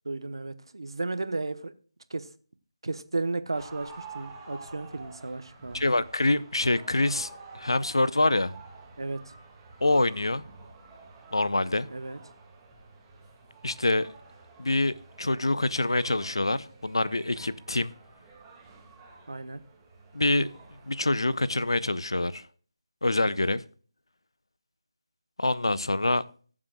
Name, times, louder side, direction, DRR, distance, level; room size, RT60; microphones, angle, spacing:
voice 1, 0.0-1.7 2.1-2.3 2.8-6.0 9.0-9.3 11.9-12.2 19.3-19.6, right 3 dB, 75° right, 1.0 m, -34 dB
sound 1, 3.5-22.4, right 3 dB, 15° right, 2.0 m, -50 dB
voice 2, 5.7-7.3 7.5-8.5 9.8-10.4 11.3-11.9 13.6-14.1 14.6-17.9 20.1-20.5 20.8-22.4 23.0-23.6 25.4-26.2, left 2 dB, 85° left, 0.7 m, -25 dB
20.0 x 7.4 x 2.3 m
figure-of-eight pair, 155°, 3 cm